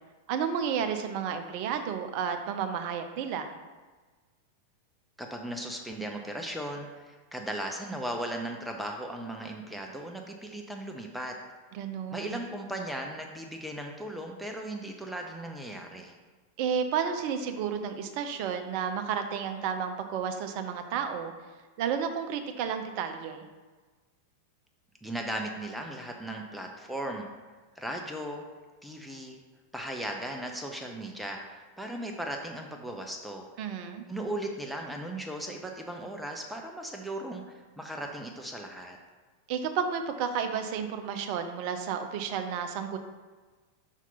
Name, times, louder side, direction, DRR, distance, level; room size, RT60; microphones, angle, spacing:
voice 1, 0.3-3.6 11.7-12.4 16.6-21.3 21.8-23.5 33.6-34.1 39.5-43.0, right 7 dB, 45° right, 7 dB, 0.6 m, -32 dB
voice 2, 5.2-11.3 12.1-16.1 25.0-27.3 27.7-28.4 28.8-29.4 29.7-33.5 34.1-39.0, right 1 dB, ahead, 1 dB, 0.6 m, -37 dB
5.7 x 4.4 x 3.9 m, 1.3 s
figure-of-eight pair, 90°, 0 cm